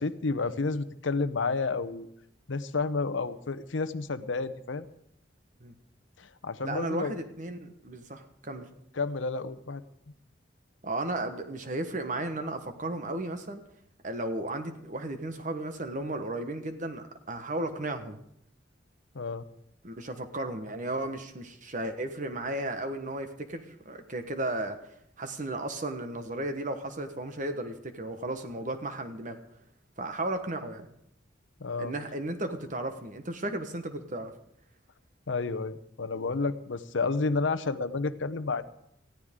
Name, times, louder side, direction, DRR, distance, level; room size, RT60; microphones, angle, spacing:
voice 1, 0.0-2.1 2.5-4.9 6.2-7.2 9.0-9.8 19.1-19.4 31.6-31.9 35.3-38.6, left 3 dB, 85° left, 12 dB, 0.8 m, -30 dB
voice 2, 6.6-8.7 10.8-13.6 14.0-18.2 19.8-29.4 30.0-30.9 31.8-34.3, right 1 dB, 40° right, 7 dB, 1.3 m, -34 dB
19.0 x 14.5 x 3.7 m, 0.75 s
head